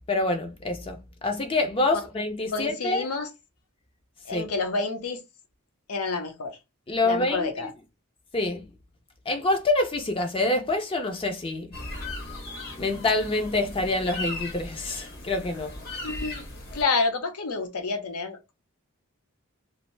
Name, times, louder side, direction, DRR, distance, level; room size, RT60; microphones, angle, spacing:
voice 1, 0.1-3.0 4.3-4.5 6.9-7.5 8.3-8.6 9.3-11.7 12.8-15.8, left 2 dB, 25° left, 0.4 m, -26 dB
voice 2, 2.5-3.3 4.3-5.2 5.9-6.6 7.0-7.7 16.0-16.5 16.7-18.5, left 4 dB, 90° left, 0.7 m, -29 dB
sound 1, 11.7-16.8, left 2 dB, 45° left, 0.9 m, -37 dB
2.6 x 2.0 x 3.1 m
head